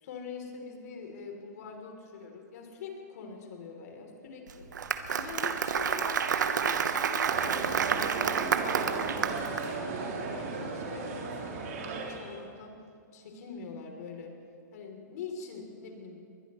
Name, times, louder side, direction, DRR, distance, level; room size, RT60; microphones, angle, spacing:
voice 1, 0.0-4.7 5.1-12.8 13.1-14.3 14.7-16.1, left 5 dB, 60° left, 2 dB, 3.3 m, -44 dB
Applause, 4.5-9.7, right 7 dB, 80° right, 1.1 m, -29 dB
sound 1, 7.2-12.5, right 4 dB, 60° right, 3.9 m, -36 dB
21.5 x 21.0 x 3.2 m, 2.3 s
hypercardioid pair, 145°, 10 cm